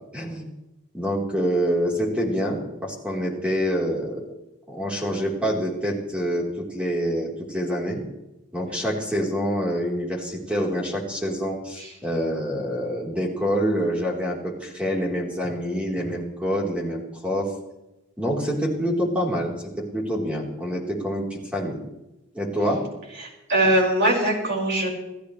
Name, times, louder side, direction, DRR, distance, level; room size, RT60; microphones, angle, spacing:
voice 1, 0.1-0.5 0.9-4.3 4.7-8.0 8.5-17.5 18.2-21.8 22.3-22.8, equal, 5° right, -3 dB, 4.0 m, -26 dB
voice 2, 23.2-24.9, right 1 dB, 50° right, -2 dB, 5.7 m, -21 dB
28.0 x 15.5 x 3.3 m, 0.96 s
head